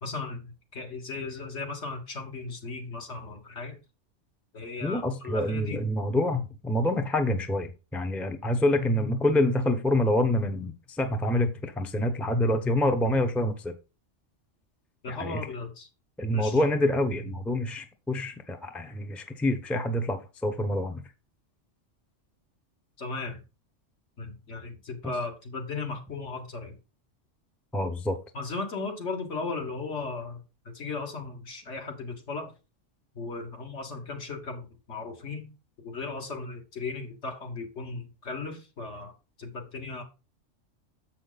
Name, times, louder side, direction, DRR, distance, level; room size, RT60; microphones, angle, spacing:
voice 1, 0.0-3.8 4.5-5.9 15.0-15.9 16.3-16.6 23.0-23.4 24.2-26.7 28.3-32.5 33.2-35.5 35.8-39.1 39.4-40.0, left 3 dB, 65° left, 3 dB, 1.9 m, -36 dB
voice 2, 4.8-13.7 15.1-15.4 16.2-21.0 27.7-28.2, left 1 dB, ahead, 6 dB, 0.6 m, -27 dB
7.4 x 5.8 x 4.0 m, 0.30 s
omnidirectional pair, 1.3 m